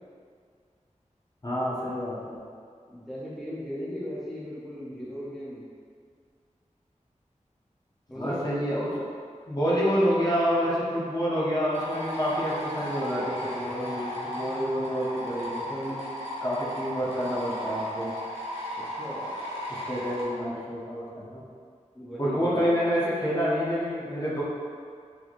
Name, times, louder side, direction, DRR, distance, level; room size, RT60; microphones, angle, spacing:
voice 1, 1.4-2.4 8.1-8.9 9.5-16.0 16.4-18.1 19.7-21.4 22.2-24.4, equal, 30° left, -7 dB, 0.8 m, -28 dB
voice 2, 2.9-5.6 8.1-8.5 18.9-19.3 21.9-22.6, equal, ahead, -9 dB, 0.7 m, -36 dB
sound 1, 11.7-20.2, equal, 50° right, 1.2 m, -35 dB
3.0 x 2.2 x 4.1 m, 2.1 s
wide cardioid pair, 50°, 13 cm